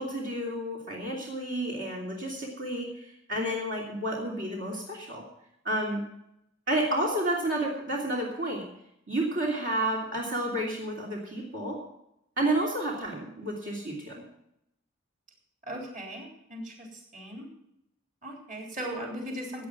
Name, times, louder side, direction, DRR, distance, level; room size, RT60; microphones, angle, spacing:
voice 1, 0.0-5.2 5.6-6.0 6.7-8.6 9.1-11.8 12.4-14.2, right 1 dB, 65° right, -2 dB, 2.9 m, -30 dB
voice 2, 15.7-17.5 18.2-19.7, right 1 dB, 40° right, 0 dB, 3.9 m, -38 dB
16.0 x 9.1 x 6.0 m, 0.79 s
head